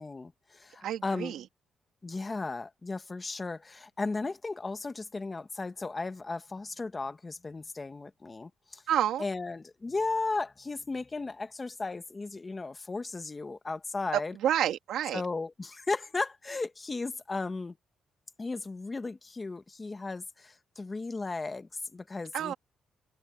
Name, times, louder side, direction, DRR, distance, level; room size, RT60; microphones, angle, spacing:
voice 1, 0.0-1.3 2.0-8.8 9.2-14.3 15.1-17.8 18.4-22.5, left 3 dB, 20° left, 1.4 m, -35 dB
voice 2, 0.8-1.4 8.9-9.2 14.1-15.2 22.3-22.5, right 11 dB, 80° right, 2.4 m, -29 dB
cardioid pair, 120°, 0 cm